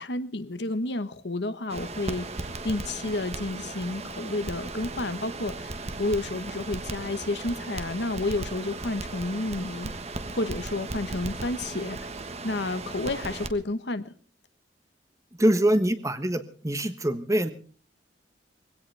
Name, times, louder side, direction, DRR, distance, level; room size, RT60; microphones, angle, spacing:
voice 1, 0.0-2.3 2.6-9.9 10.3-12.1 12.4-14.1, left 2 dB, 65° left, 11 dB, 1.2 m, -31 dB
Crackle, 1.7-13.5, right 2 dB, 35° right, 1.4 m, -36 dB
voice 2, 15.4-17.5, right 1 dB, 15° right, 10 dB, 1.2 m, -24 dB
22.5 x 17.0 x 3.4 m, 0.41 s
head